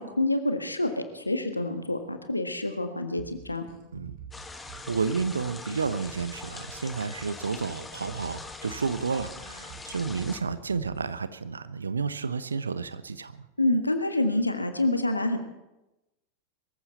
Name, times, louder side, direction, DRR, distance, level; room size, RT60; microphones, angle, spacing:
voice 1, 0.0-3.6 13.6-15.4, left 2 dB, 85° left, 7 dB, 1.5 m, -27 dB
sound 1, 3.2-11.2, right 7 dB, 45° right, 3.7 m, -48 dB
sound 2, 4.3-10.4, left 3 dB, 10° left, 1.4 m, -42 dB
voice 2, 4.9-13.4, right 5 dB, 75° right, 14 dB, 0.8 m, -31 dB
22.5 x 14.5 x 4.1 m, 0.97 s
figure-of-eight pair, 90°, 0 cm